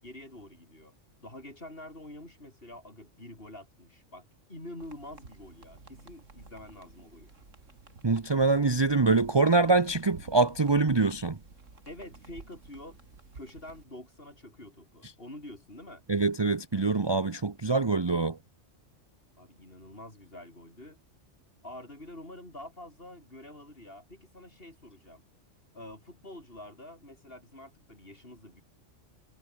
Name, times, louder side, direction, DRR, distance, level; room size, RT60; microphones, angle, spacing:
voice 1, 0.0-0.9 1.2-7.3 11.9-13.0 13.3-16.0 19.4-21.0 21.6-25.2 25.7-28.6, left 1 dB, 50° left, 7.1 m, -47 dB
sound 1, 4.8-13.8, right 3 dB, 85° right, 3.3 m, -52 dB
voice 2, 8.0-11.4 16.1-18.4, right 3 dB, 25° right, 0.7 m, -24 dB
omnidirectional pair, 1.3 m